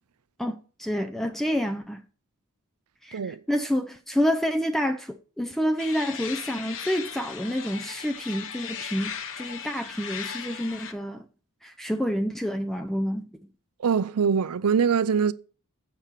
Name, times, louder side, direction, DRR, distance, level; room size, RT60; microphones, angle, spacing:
voice 1, 0.4-2.0 3.0-3.2 3.5-11.3 11.6-13.3, equal, ahead, 0.5 m, -28 dB
sound 1, 5.8-10.9, left 7 dB, 65° left, 1.1 m, -37 dB
voice 2, 13.8-15.3, right 6 dB, 80° right, 0.5 m, -23 dB
7.5 x 5.9 x 6.6 m
head